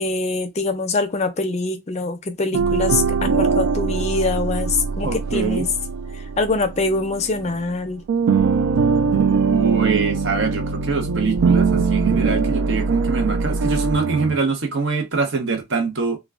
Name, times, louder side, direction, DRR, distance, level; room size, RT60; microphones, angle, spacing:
voice 1, 0.0-5.7 6.4-8.0, left 3 dB, 30° left, 0.4 m, -24 dB
sound 1, 2.5-7.8 8.1-14.4, right 5 dB, 90° right, 0.3 m, -21 dB
voice 2, 5.0-5.7 9.5-16.2, right 4 dB, 55° right, 0.7 m, -24 dB
2.2 x 2.1 x 3.4 m
head